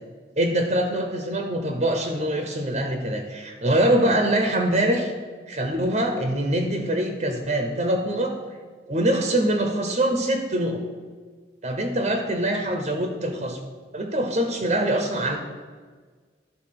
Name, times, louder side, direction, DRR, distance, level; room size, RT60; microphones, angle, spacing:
voice 1, 0.4-5.1 5.5-8.3 8.9-10.8 11.6-13.6 13.9-15.4, right 1 dB, 40° right, 5 dB, 0.7 m, -24 dB
12.0 x 4.0 x 5.8 m, 1.5 s
head